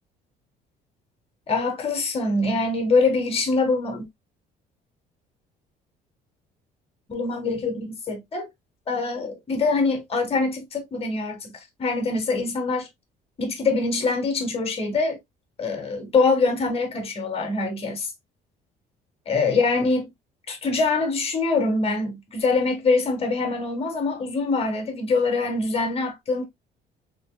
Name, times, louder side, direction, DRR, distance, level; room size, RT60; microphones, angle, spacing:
voice 1, 1.5-4.1 7.1-8.5 8.9-11.5 11.8-12.9 13.4-15.2 15.6-18.1 19.3-20.1 20.5-26.4, left 3 dB, 35° left, 1.5 m, -24 dB
4.2 x 3.2 x 2.3 m
cardioid pair, 110°, 17 cm